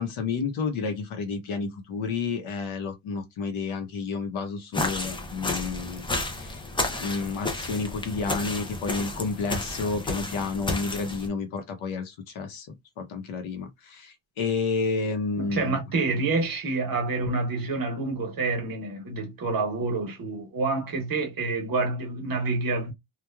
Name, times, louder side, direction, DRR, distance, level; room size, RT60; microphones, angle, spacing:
voice 1, 0.0-6.6 6.9-12.7 13.0-15.8, left 4 dB, 70° left, 0.8 m, -30 dB
sound 1, 4.7-11.3, left 2 dB, 10° left, 0.3 m, -32 dB
voice 2, 15.4-22.9, right 3 dB, 45° right, 0.9 m, -28 dB
3.1 x 2.2 x 2.2 m
cardioid pair, 150°, 49 cm